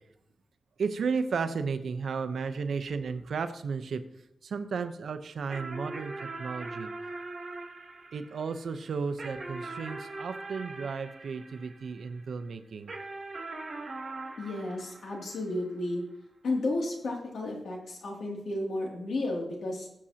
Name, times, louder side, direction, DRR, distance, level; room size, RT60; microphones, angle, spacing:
voice 1, 0.8-4.0 4.4-6.1 6.4-6.9 8.1-12.9, right 5 dB, 80° right, 9 dB, 0.8 m, -33 dB
sound 1, 5.5-12.2 12.9-15.7, right 3 dB, 50° right, 3.6 m, -41 dB
voice 2, 14.4-16.0 16.4-19.9, left 2 dB, 85° left, -1 dB, 2.6 m, -32 dB
20.5 x 7.5 x 2.9 m, 0.81 s
wide cardioid pair, 115°, 0 cm